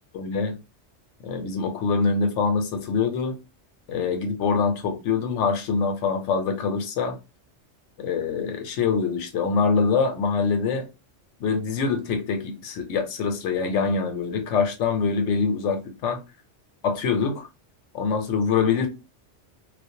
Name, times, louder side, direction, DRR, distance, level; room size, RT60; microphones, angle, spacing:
voice 1, 0.1-0.6 1.2-3.4 3.9-7.2 8.0-10.9 11.4-16.2 16.8-17.5 17.9-18.9, left 5 dB, 90° left, 1.0 m, -24 dB
2.4 x 2.1 x 2.6 m
omnidirectional pair, 1.2 m